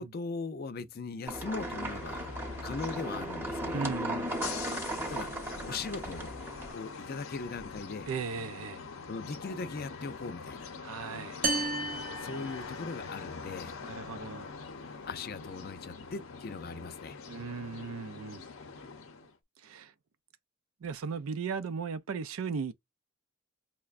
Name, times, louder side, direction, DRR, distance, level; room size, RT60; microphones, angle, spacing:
voice 1, 0.0-2.3 2.6-4.0 5.1-5.3 5.6-6.4 6.7-8.1 9.1-10.7 12.2-13.8 15.1-17.2, left 4 dB, 45° left, 0.4 m, -39 dB
sound 1, 1.3-19.3, left 5 dB, 90° left, 0.7 m, -44 dB
sound 2, 1.3-6.7, right 1 dB, 10° right, 0.8 m, -37 dB
voice 2, 3.7-4.3 8.1-8.8 10.8-11.4 13.8-14.5 17.3-18.5 19.6-19.9 20.8-22.7, right 5 dB, 85° right, 0.4 m, -37 dB
sound 3, 11.4-13.2, right 2 dB, 40° right, 0.5 m, -33 dB
5.6 x 2.1 x 2.4 m
head